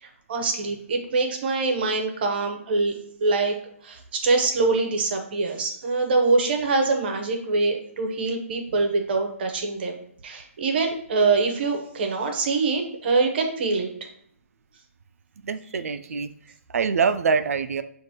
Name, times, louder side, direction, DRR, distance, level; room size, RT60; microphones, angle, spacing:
voice 1, 0.0-3.6 3.8-10.0 10.2-13.9, right 3 dB, 45° right, 4 dB, 0.8 m, -24 dB
voice 2, 15.4-16.3 16.7-17.8, right 5 dB, 80° right, 11 dB, 0.4 m, -24 dB
6.4 x 2.5 x 2.9 m, 0.68 s
hypercardioid pair, 165°, 8 cm